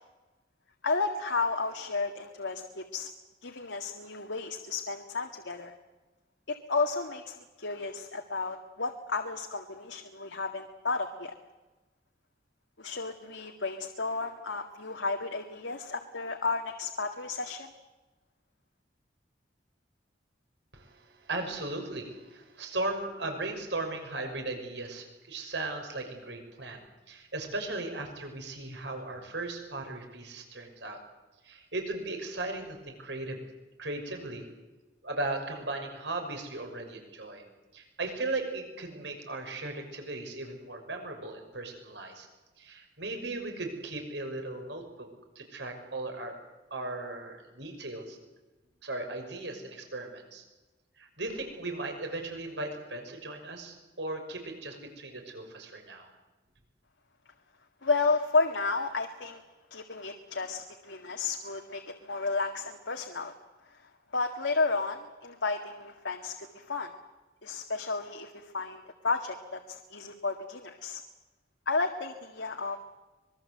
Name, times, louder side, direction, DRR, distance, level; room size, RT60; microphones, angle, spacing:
voice 1, 0.8-3.1 3.4-5.7 6.5-11.4 12.8-17.7 57.8-59.4 59.7-63.3 63.7-66.9 67.4-71.0 71.7-72.8, left 3 dB, 90° left, 3 dB, 2.0 m, -32 dB
voice 2, 20.7-31.0 31.4-33.4 33.8-34.5 35.0-37.4 37.7-42.3 42.6-45.1 45.4-46.4 46.7-48.2 48.8-50.4 51.0-56.1, right 2 dB, 75° right, 4 dB, 6.1 m, -37 dB
25.5 x 22.0 x 7.9 m, 1.2 s
head